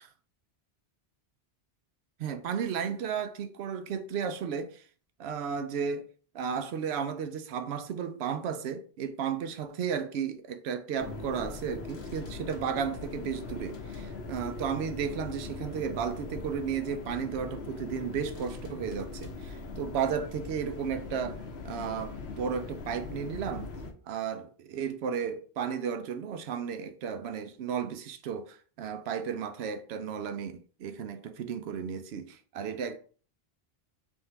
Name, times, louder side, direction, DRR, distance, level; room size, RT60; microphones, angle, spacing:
voice 1, 2.2-4.8 5.2-6.1 6.3-23.7 24.1-33.0, right 7 dB, 90° right, 0.8 m, -34 dB
sound 1, 11.0-23.9, left 3 dB, 80° left, 1.1 m, -41 dB
3.6 x 2.6 x 4.5 m
omnidirectional pair, 1.0 m